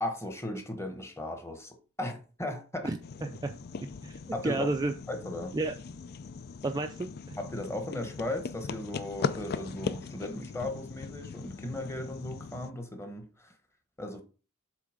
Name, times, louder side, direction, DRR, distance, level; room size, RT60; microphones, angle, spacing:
voice 1, 0.0-2.9 4.3-4.7 5.1-5.6 7.4-13.5 14.0-14.2, left 1 dB, 10° left, 1.1 m, -36 dB
voice 2, 2.8-3.6 4.0-4.9 5.5-5.7 6.6-7.4, right 2 dB, 15° right, 0.4 m, -32 dB
sound 1, 3.0-12.7, left 5 dB, 45° left, 0.4 m, -39 dB
7.6 x 3.4 x 4.9 m
head